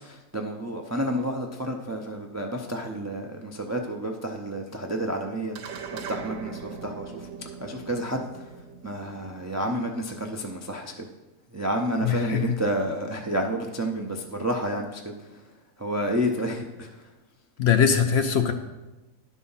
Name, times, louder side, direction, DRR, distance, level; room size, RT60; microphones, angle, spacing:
voice 1, 0.0-7.1 7.6-8.3 8.8-11.1 11.5-15.1 15.8-16.9, equal, 25° right, 2 dB, 0.3 m, -30 dB
sound 1, 5.5-10.2, right 6 dB, 90° right, 1.1 m, -40 dB
voice 2, 12.0-12.6 17.6-18.5, left 7 dB, 65° left, 7 dB, 0.7 m, -21 dB
11.5 x 4.1 x 5.5 m, 1.1 s
omnidirectional pair, 1.4 m